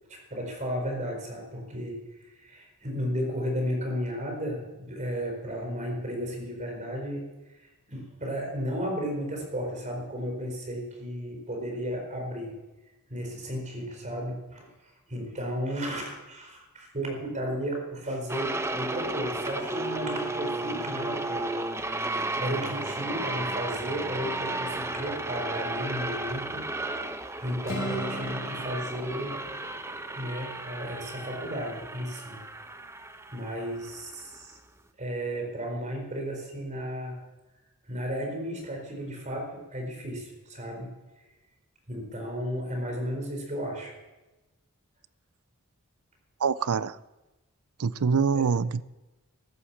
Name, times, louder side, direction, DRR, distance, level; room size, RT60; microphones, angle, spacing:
voice 1, 0.1-2.0 2.4-7.3 7.6-12.5 13.1-14.7 15.1-21.6 21.9-26.7 27.4-29.4 30.2-32.4 33.3-34.6 35.0-37.2 37.9-40.9 41.9-43.9 48.3-48.4, equal, 35° right, 4.5 m, -34 dB
sound 1, 18.3-34.5, right 2 dB, 10° right, 0.8 m, -34 dB
Acoustic guitar, 27.6-31.6, equal, 65° left, 3.6 m, -41 dB
voice 2, 46.4-47.0 47.8-48.8, right 5 dB, 80° right, 0.5 m, -25 dB
14.5 x 11.5 x 7.1 m
head